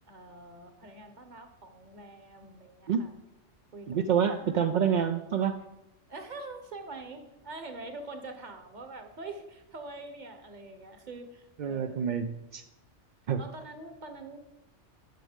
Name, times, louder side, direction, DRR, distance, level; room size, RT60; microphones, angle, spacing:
voice 1, 0.1-3.1 3.7-4.6 6.1-12.1 13.4-14.4, right 2 dB, 40° right, 7 dB, 1.1 m, -44 dB
voice 2, 3.9-5.6 11.6-12.6 13.3-13.4, right 7 dB, 65° right, 7 dB, 0.4 m, -27 dB
10.5 x 6.4 x 5.0 m, 0.94 s
omnidirectional pair, 1.3 m